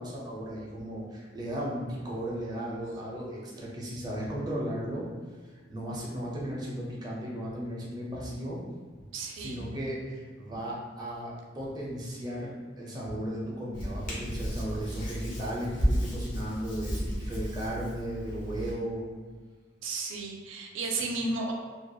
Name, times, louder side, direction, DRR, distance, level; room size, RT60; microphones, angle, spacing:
voice 1, 0.0-5.1 5.7-8.6 9.3-19.0, equal, 20° right, -5 dB, 0.5 m, -35 dB
voice 2, 9.1-9.6 19.8-21.5, right 3 dB, 85° right, 1 dB, 0.4 m, -33 dB
Hands, 13.7-18.7, equal, 45° left, 0.6 m, -33 dB
2.3 x 2.1 x 2.6 m, 1.5 s
head